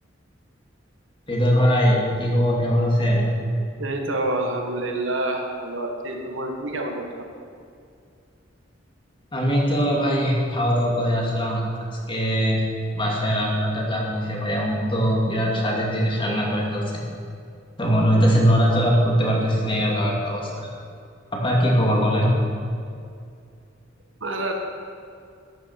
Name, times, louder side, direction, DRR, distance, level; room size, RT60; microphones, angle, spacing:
voice 1, 1.3-3.3 9.3-11.6 12.1-12.6 12.9-17.0 17.8-20.7 21.3-22.3, equal, 25° left, -2 dB, 2.5 m, -21 dB
voice 2, 3.8-7.1 24.2-24.5, right 2 dB, 75° right, 2 dB, 1.8 m, -27 dB
12.5 x 10.0 x 6.0 m, 2.3 s
head